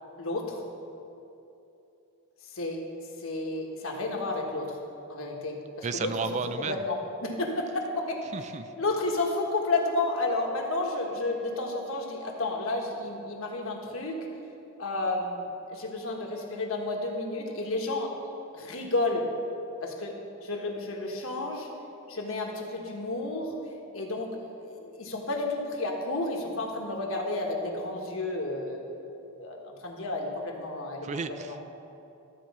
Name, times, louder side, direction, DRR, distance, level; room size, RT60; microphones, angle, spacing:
voice 1, 0.2-0.6 2.5-2.8 3.2-4.8 5.1-6.1 6.7-8.2 8.8-14.2 14.8-18.1 18.5-19.3 19.8-20.1 20.4-21.7 22.1-23.5 23.9-28.8 29.4-31.1 31.5-31.6, left 2 dB, 65° left, 1 dB, 1.4 m, -31 dB
voice 2, 5.8-6.8 8.3-8.7 31.0-31.6, right 5 dB, 30° right, 10 dB, 0.3 m, -33 dB
13.0 x 4.6 x 7.3 m, 2.8 s
head